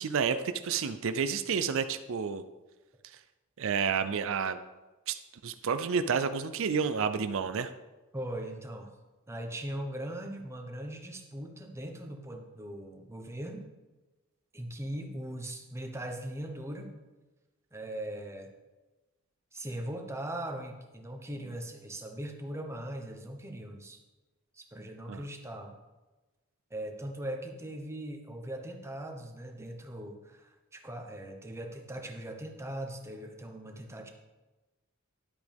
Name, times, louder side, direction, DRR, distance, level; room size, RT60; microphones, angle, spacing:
voice 1, 0.0-2.4 3.0-3.2 3.6-4.6 5.1-7.7 25.1-25.2, right 6 dB, 65° right, 10 dB, 0.5 m, -30 dB
voice 2, 8.1-8.9 9.3-13.6 14.5-16.9 17.7-18.5 19.5-24.0 24.5-25.7 26.7-34.1, right 1 dB, 15° right, 3 dB, 1.1 m, -40 dB
11.5 x 8.0 x 3.5 m, 1.2 s
head